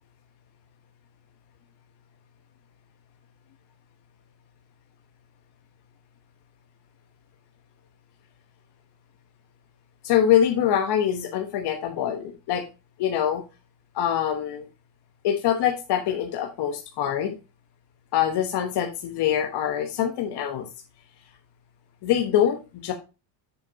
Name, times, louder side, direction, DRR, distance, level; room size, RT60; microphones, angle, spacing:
voice 1, 10.0-12.6 13.0-13.4 13.9-14.6 15.2-17.4 18.1-20.7 22.0-22.9, left 10 dB, 50° left, 4 dB, 1.1 m, -24 dB
6.9 x 6.8 x 2.8 m, 0.29 s
cardioid pair, 125°, 50 cm